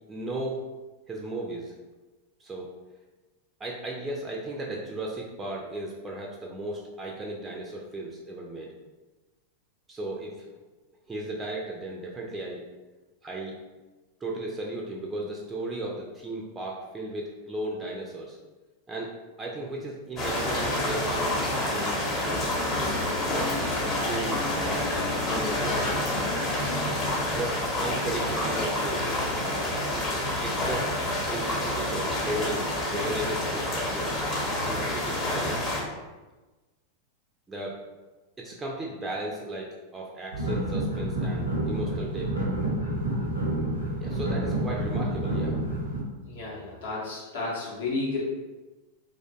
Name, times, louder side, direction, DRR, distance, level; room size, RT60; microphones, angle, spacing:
voice 1, 0.1-0.6 1.1-1.8 2.4-2.7 3.6-8.7 9.9-10.5 11.1-12.6 13.2-13.6 14.2-18.4 18.9-22.6 23.2-26.1 27.3-29.9 30.4-30.9 31.3-34.2 34.6-35.6 37.5-37.8 38.4-42.3 44.0-45.6, right 1 dB, 15° right, -2 dB, 0.3 m, -36 dB
sound 1, 20.2-35.8, left 1 dB, 25° left, 0.7 m, -28 dB
sound 2, 40.3-46.0, right 1 dB, 80° right, 0.5 m, -29 dB
voice 2, 46.3-48.2, left 3 dB, 60° left, -4 dB, 0.6 m, -32 dB
2.4 x 2.1 x 2.5 m, 1.2 s
figure-of-eight pair, 90°, 0 cm